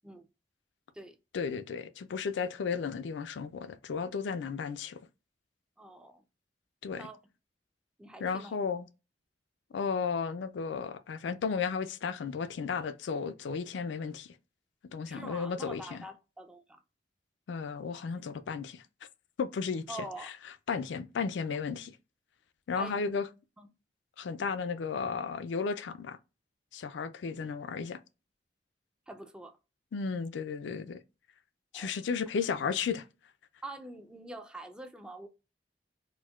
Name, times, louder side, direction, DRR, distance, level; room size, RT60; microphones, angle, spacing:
voice 1, 1.3-5.0 6.8-7.1 8.2-8.9 9.7-14.3 14.9-16.0 17.5-18.8 19.4-20.0 20.2-20.3 20.7-21.9 22.7-23.3 24.2-26.2 26.7-28.0 29.9-31.0 31.7-33.0, left 5 dB, 85° left, 0.4 m, -34 dB
voice 2, 5.8-6.2 7.0-7.2 8.0-8.6 15.1-16.6 18.1-18.3 19.9-20.3 22.8-23.0 23.6-23.7 27.4-27.6 29.1-29.6 31.7-31.9 33.6-35.3, right 2 dB, 5° right, 0.3 m, -45 dB
4.5 x 2.1 x 2.3 m
head